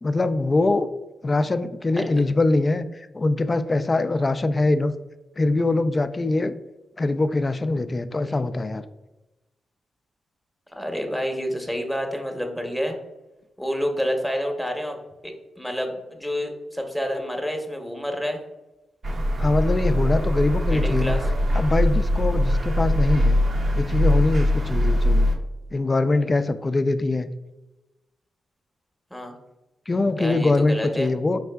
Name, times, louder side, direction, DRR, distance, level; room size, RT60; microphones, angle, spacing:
voice 1, 0.0-0.9 1.2-4.9 5.4-6.5 7.0-8.8 19.4-21.1 21.5-23.4 23.7-25.3 25.7-27.3 29.9-31.4, left 2 dB, 35° left, 11 dB, 0.3 m, -23 dB
voice 2, 10.8-13.0 13.6-15.0 15.2-18.4 20.7-21.3 29.1-29.3 30.2-31.1, equal, 5° left, 3 dB, 0.8 m, -29 dB
sound 1, 19.0-25.4, left 1 dB, 60° right, 0.6 m, -21 dB
4.7 x 3.4 x 2.2 m, 1.0 s
cardioid pair, 60°, 0 cm